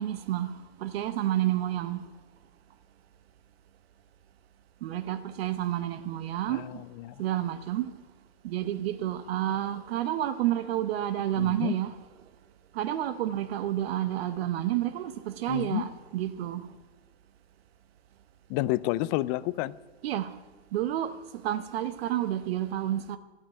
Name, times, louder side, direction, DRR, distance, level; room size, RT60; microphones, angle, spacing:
voice 1, 0.0-2.0 4.8-6.8 7.2-7.9 8.4-11.9 12.7-15.9 16.1-16.7 20.0-20.3 20.7-21.1 21.4-23.2, right 12 dB, 60° right, 0.8 m, -30 dB
voice 2, 6.5-7.2 11.4-11.8 15.5-15.8 18.5-19.7, left 17 dB, 30° left, 0.4 m, -30 dB
12.0 x 8.8 x 9.0 m
hypercardioid pair, 115°, 34 cm